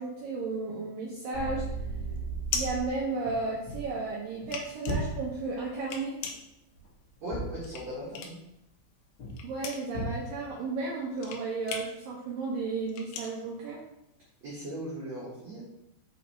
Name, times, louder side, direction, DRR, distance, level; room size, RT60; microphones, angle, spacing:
voice 1, 0.0-1.6 2.5-6.2 9.4-13.8, right 3 dB, 85° right, -4 dB, 1.9 m, -33 dB
sound 1, 1.2-3.8 4.1-8.6 8.9-14.4, left 6 dB, 90° left, 2.2 m, -39 dB
sound 2, 1.3-3.0, right 4 dB, 55° left, 1.5 m, -35 dB
sound 3, 3.2-5.9 6.4-8.1 9.2-9.6 9.9-10.6, equal, 70° left, 0.9 m, -37 dB
voice 2, 7.2-8.4 14.4-15.6, right 1 dB, 60° right, -7 dB, 1.8 m, -38 dB
6.3 x 5.1 x 3.0 m, 0.87 s
omnidirectional pair, 5.1 m